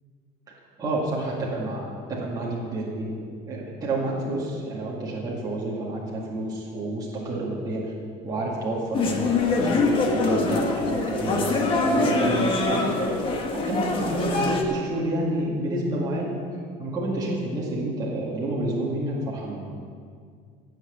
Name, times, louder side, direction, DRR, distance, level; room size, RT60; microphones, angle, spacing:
voice 1, 0.8-7.9 8.2-16.3 16.8-19.6, right 1 dB, 20° right, -5 dB, 2.1 m, -29 dB
sound 1, 8.9-14.6, left 3 dB, 30° left, 1.4 m, -24 dB
17.0 x 5.9 x 8.3 m, 2.1 s
cardioid pair, 170°, 17 cm